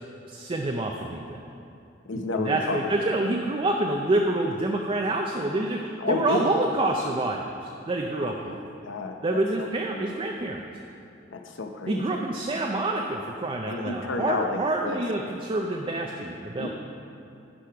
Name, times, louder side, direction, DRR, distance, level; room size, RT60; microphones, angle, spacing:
voice 1, 0.3-1.4 2.1-8.6 9.2-10.6 11.9-16.7, right 2 dB, 30° right, 2 dB, 0.4 m, -27 dB
voice 2, 2.1-2.9 6.0-6.5 8.2-8.6 8.8-10.2 11.3-12.2 13.7-15.0 16.6-16.7, left 3 dB, 85° left, 4 dB, 0.7 m, -31 dB
10.0 x 4.9 x 5.7 m, 2.7 s
head